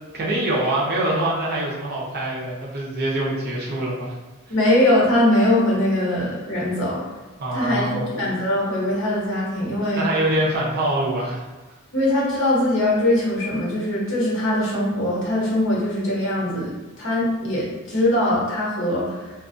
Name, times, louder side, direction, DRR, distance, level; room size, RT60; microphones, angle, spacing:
voice 1, 0.1-4.1 7.4-8.1 9.9-11.4, right 1 dB, 50° right, -5 dB, 0.7 m, -24 dB
voice 2, 4.5-7.0 7.5-10.0 11.9-19.3, left 1 dB, 65° left, -6 dB, 1.0 m, -21 dB
2.4 x 2.3 x 2.5 m, 1.2 s
head